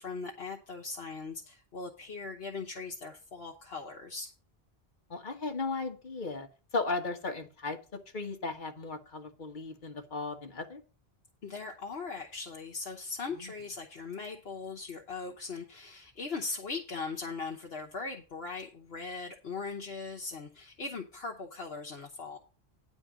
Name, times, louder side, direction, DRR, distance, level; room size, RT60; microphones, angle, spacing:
voice 1, 0.0-4.3 11.4-22.4, left 4 dB, 70° left, 1.3 m, -39 dB
voice 2, 5.1-6.5 6.7-10.8 13.4-13.5, left 3 dB, 50° left, 1.5 m, -36 dB
10.0 x 4.4 x 7.5 m
omnidirectional pair, 1.1 m